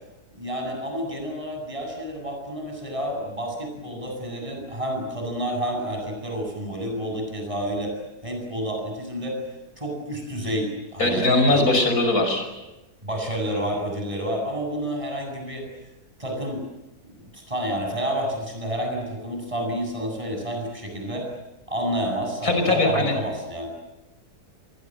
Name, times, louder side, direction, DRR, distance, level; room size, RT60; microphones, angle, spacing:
voice 1, 0.3-7.9 8.2-9.4 9.8-11.7 13.0-15.7 16.2-16.7 17.1-21.3 21.7-23.7, equal, 20° right, 2 dB, 8.2 m, -29 dB
voice 2, 11.0-12.5 22.4-23.1, left 2 dB, 65° left, 5 dB, 6.1 m, -20 dB
30.0 x 23.0 x 7.8 m, 1.0 s
omnidirectional pair, 1.7 m